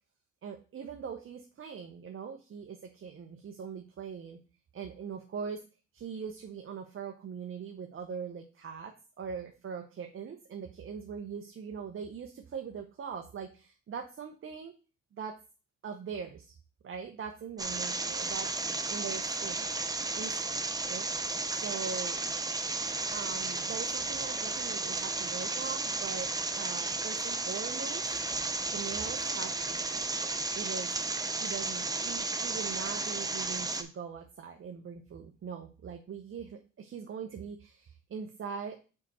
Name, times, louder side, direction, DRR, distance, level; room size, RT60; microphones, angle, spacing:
voice 1, 0.4-4.4 4.7-5.6 5.9-14.7 15.1-15.3 15.8-16.5 16.8-18.5 18.9-19.7 20.1-21.1 21.6-22.2 23.1-28.2 28.7-30.1 30.6-30.9 31.4-38.8, right 6 dB, 45° right, 4 dB, 0.8 m, -41 dB
sound 1, 17.6-33.8, right 3 dB, 10° right, 0.6 m, -33 dB
4.9 x 4.8 x 4.2 m, 0.34 s
cardioid pair, 90°, 30 cm